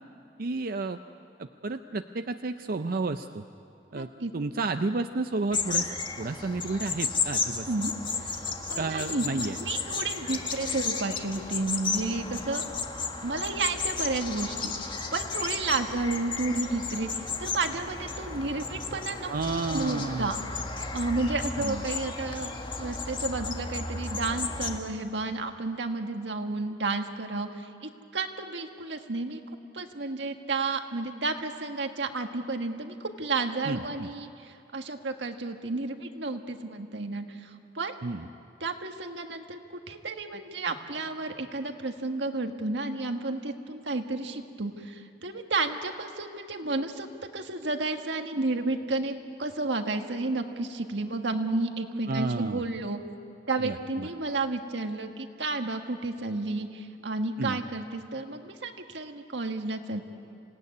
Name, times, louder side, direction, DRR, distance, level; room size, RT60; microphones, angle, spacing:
voice 1, 0.4-1.0 1.4-3.4 3.9-5.9 6.2-7.9 8.8-9.6 19.3-20.4 21.6-21.8 33.7-34.1 38.0-38.3 52.1-52.6 53.6-54.1 57.4-57.6, right 3 dB, 55° right, 8 dB, 0.6 m, -31 dB
voice 2, 3.9-4.3 7.7-7.9 8.4-9.2 9.6-12.6 13.2-19.3 19.7-20.4 20.9-22.5 22.8-29.4 29.7-38.0 38.6-47.1 47.3-53.0 53.5-60.0, right 3 dB, 85° right, 5 dB, 1.6 m, -32 dB
sound 1, 5.5-24.8, left 4 dB, 30° left, 1.6 m, -33 dB
27.0 x 17.5 x 9.7 m, 2.6 s
head